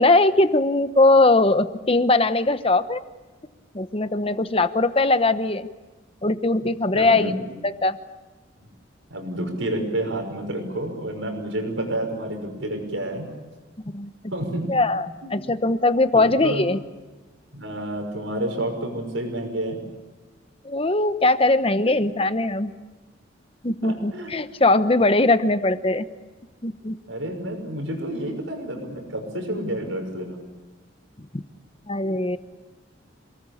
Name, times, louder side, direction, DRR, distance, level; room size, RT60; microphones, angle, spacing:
voice 1, 0.0-3.0 3.7-5.7 6.2-7.3 7.6-8.0 13.9-14.1 14.7-16.8 20.6-22.7 23.6-26.1 26.6-27.0 31.3-31.4 31.9-32.4, left 2 dB, 30° left, 11 dB, 1.0 m, -20 dB
voice 2, 6.9-7.4 9.1-13.3 14.3-14.8 15.2-15.3 16.1-16.7 17.5-19.8 21.9-22.0 23.8-24.3 27.1-30.4, right 1 dB, 90° right, 5 dB, 5.9 m, -29 dB
27.5 x 19.5 x 8.5 m, 1.2 s
head